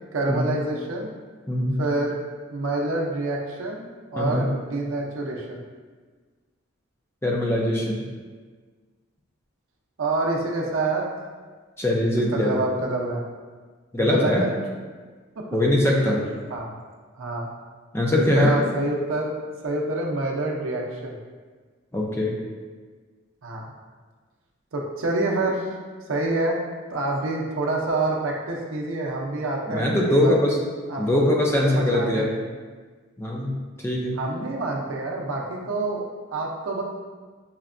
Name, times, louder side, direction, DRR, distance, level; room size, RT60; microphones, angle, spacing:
voice 1, 0.1-1.1 1.8-2.2 2.5-3.9 4.1-5.6 10.0-11.1 12.3-13.2 14.0-14.5 15.4-15.5 16.5-16.7 17.2-17.5 18.3-21.2 23.4-23.7 24.7-25.8 26.1-26.6 26.9-30.3 30.9-31.3 31.8-32.3 34.2-36.0 36.3-36.8, right 2 dB, 75° right, -1 dB, 0.6 m, -27 dB
voice 2, 1.5-1.8 4.2-4.5 7.2-8.1 11.8-12.6 13.9-14.5 15.5-16.2 17.9-18.5 21.9-22.4 29.7-30.6 31.0-32.3 33.2-33.6 33.8-34.2, left 1 dB, 10° left, -3 dB, 0.4 m, -22 dB
5.6 x 2.2 x 2.4 m, 1.4 s
head